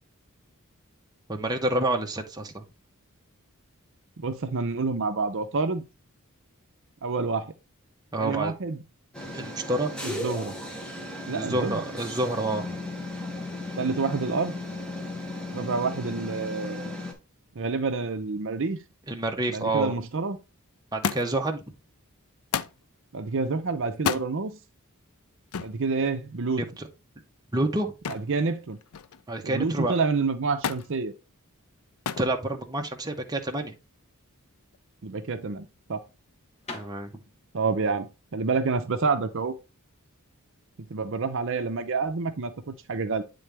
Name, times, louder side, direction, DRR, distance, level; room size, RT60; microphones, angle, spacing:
voice 1, 1.3-2.6 8.1-8.5 9.3-9.9 11.3-12.8 19.1-19.9 20.9-21.6 26.6-26.9 27.5-27.9 29.3-29.9 32.2-33.8 36.7-37.1, right 1 dB, 20° right, 0.8 m, -28 dB
voice 2, 4.2-5.8 7.0-7.5 8.2-8.8 10.0-10.5 11.3-11.8 13.8-14.6 15.5-17.1 17.6-18.8 19.5-20.4 23.1-24.6 25.6-26.6 28.1-28.8 29.4-31.1 35.0-36.0 37.5-39.5 40.8-43.2, right 4 dB, 60° right, 0.6 m, -28 dB
sound 1, 9.1-17.1, left 2 dB, 5° left, 1.1 m, -36 dB
Thump thud, 21.0-21.5 22.5-22.8 23.9-24.3 25.5-25.8 28.0-28.4 28.7-29.3 30.6-30.9 32.0-32.3 33.3-33.7 34.7-34.8, left 7 dB, 75° left, 0.5 m, -31 dB
sound 2, 36.6-40.4, left 2 dB, 30° left, 1.3 m, -47 dB
8.7 x 3.9 x 3.4 m
head